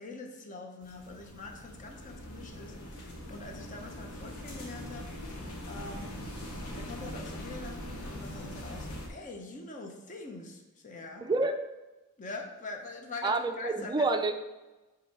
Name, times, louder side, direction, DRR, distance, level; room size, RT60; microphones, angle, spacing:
voice 1, 0.0-6.2 6.7-11.3 12.2-14.1, left 3 dB, 35° left, 3 dB, 0.7 m, -44 dB
sound 1, 0.8-9.1, equal, 85° left, 1.0 m, -42 dB
voice 2, 11.2-11.6 13.2-14.3, right 3 dB, 20° right, 7 dB, 0.4 m, -28 dB
5.2 x 3.9 x 4.6 m, 1.1 s
head